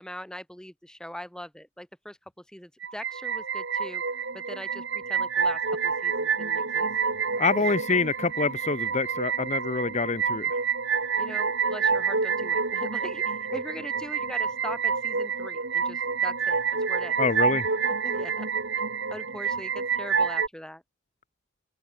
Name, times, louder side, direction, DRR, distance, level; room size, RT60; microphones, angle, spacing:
voice 1, 0.0-6.9 7.6-7.8 11.2-16.6 16.9-17.2 17.8-18.5 19.1-20.8, equal, 5° left, 1.6 m, -41 dB
sound 1, 2.8-20.5, right 6 dB, 60° right, 2.9 m, -28 dB
voice 2, 7.4-10.5 17.2-17.7, left 4 dB, 35° left, 0.9 m, -26 dB
head